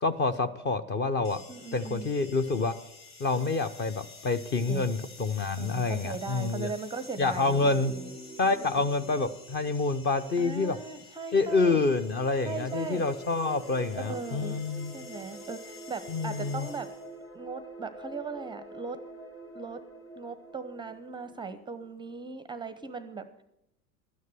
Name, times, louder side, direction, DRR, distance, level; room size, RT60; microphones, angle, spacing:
voice 1, 0.0-1.4 1.7-2.7 3.2-6.7 7.2-7.9 8.4-10.8 11.3-15.1 16.1-16.7, left 3 dB, 25° left, 11 dB, 0.7 m, -27 dB
sound 1, 1.2-17.2, left 4 dB, 50° left, 2.3 m, -51 dB
voice 2, 1.5-2.1 4.7-4.8 5.6-8.1 8.6-8.8 10.4-11.8 12.4-13.1 14.1-14.6 14.9-16.9 17.3-19.0 19.5-19.8 20.2-23.4, right 4 dB, 10° right, 12 dB, 0.6 m, -38 dB
sound 2, 7.5-11.1 11.6-22.3, right 2 dB, 10° left, 2.3 m, -46 dB
12.5 x 9.4 x 7.6 m, 0.82 s
figure-of-eight pair, 80°, 44 cm